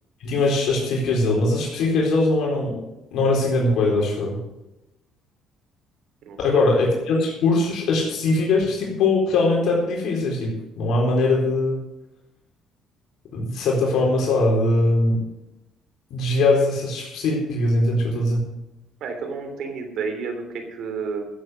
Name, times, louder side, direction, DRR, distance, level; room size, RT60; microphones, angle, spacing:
voice 1, 0.2-2.8 3.1-4.4 6.4-10.5 10.8-11.8 13.3-15.2 16.1-18.4, left 2 dB, 70° left, -2 dB, 4.0 m, -21 dB
voice 2, 6.2-6.7 19.0-21.3, right 5 dB, 65° right, 5 dB, 3.3 m, -31 dB
14.5 x 8.0 x 6.5 m, 0.94 s
cardioid pair, 115°, 0 cm